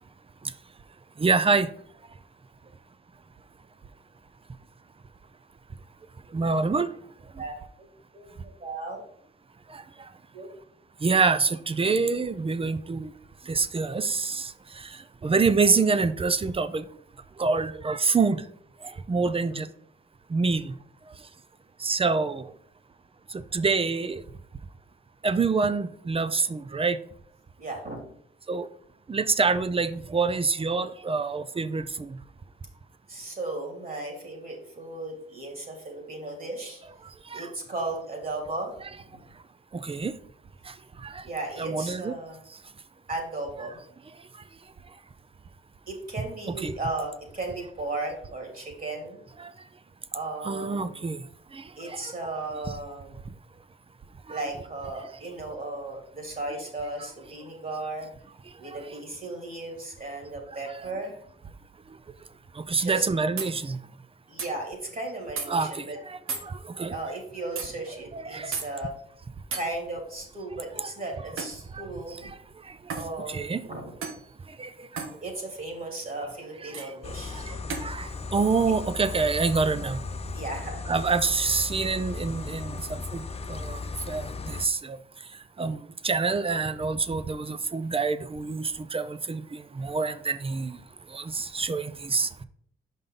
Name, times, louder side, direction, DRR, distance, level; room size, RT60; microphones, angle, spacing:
voice 1, 1.2-1.7 6.3-6.9 11.0-13.1 13.5-14.5 15.2-16.8 17.4-18.4 19.1-19.7 20.3-20.7 21.8-22.4 23.5-24.2 25.2-27.0 28.5-28.7 29.1-32.2 37.3-37.5 39.8-40.1 41.0-41.2 41.6-42.1 46.6-46.7 49.4-49.5 50.4-51.2 51.5-52.0 54.3-54.4 62.7-63.8 65.5-67.0 68.1-68.5 70.8-70.9 71.7-71.8 73.3-73.6 74.6-74.7 74.9-75.0 76.6-76.9 77.3-77.6 77.8-80.0 80.9-83.2 83.5-83.8 84.1-85.0 85.6-90.8 91.1-92.3, right 4 dB, 25° right, 0.5 m, -26 dB
voice 2, 8.6-9.0 10.3-10.5 19.3-19.6 27.6-28.0 33.1-36.8 37.3-38.7 39.1-39.2 41.2-42.4 43.1-43.8 45.9-49.2 50.1-51.0 51.8-53.2 54.3-58.1 58.6-61.2 62.8-63.1 64.3-66.0 66.9-68.9 69.5-72.3 72.9-73.9 75.2-77.6 80.3-80.9, right 2 dB, 45° right, 2.7 m, -35 dB
sound 1, 63.4-63.5 64.4-64.5 65.4-65.5 66.3-66.5 67.6-67.7 68.5-68.7 69.5-69.7 71.4-71.6 72.9-73.1 74.0-74.2 75.0-75.1 76.7-76.9 77.7-77.9, right 5 dB, 80° right, 1.0 m, -33 dB
sound 2, 77.0-84.7, left 4 dB, 30° left, 0.5 m, -36 dB
5.7 x 5.4 x 3.8 m
cardioid pair, 90°, 21 cm